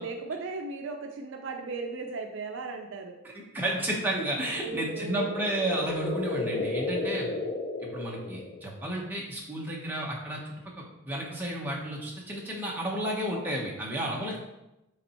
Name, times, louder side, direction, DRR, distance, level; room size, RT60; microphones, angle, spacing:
voice 1, 0.0-3.2 4.6-5.4 7.2-7.3, right 4 dB, 60° right, 4 dB, 0.5 m, -36 dB
voice 2, 3.3-7.3 7.8-14.4, right 1 dB, 10° right, -3 dB, 1.1 m, -32 dB
sound 1, 4.7-8.9, left 3 dB, 40° left, 0.5 m, -33 dB
7.1 x 3.4 x 4.4 m, 0.93 s
head